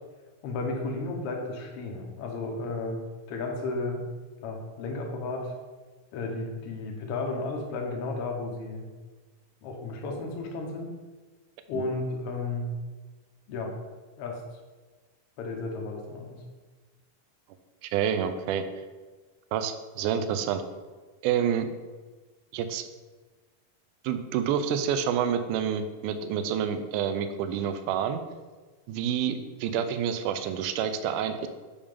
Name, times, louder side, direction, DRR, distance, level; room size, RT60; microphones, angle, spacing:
voice 1, 0.4-3.0 3.3-4.0 4.4-5.5 6.1-8.9 9.6-10.9 11.7-12.7 13.5-13.7 14.2-14.4 15.4-16.4, left 3 dB, 75° left, 1 dB, 1.3 m, -33 dB
voice 2, 17.8-18.7 19.5-20.6 21.2-21.7 22.5-22.9 24.0-28.2 28.9-31.5, right 8 dB, 80° right, 9 dB, 1.9 m, -28 dB
7.1 x 3.4 x 5.1 m, 1.3 s
omnidirectional pair, 4.0 m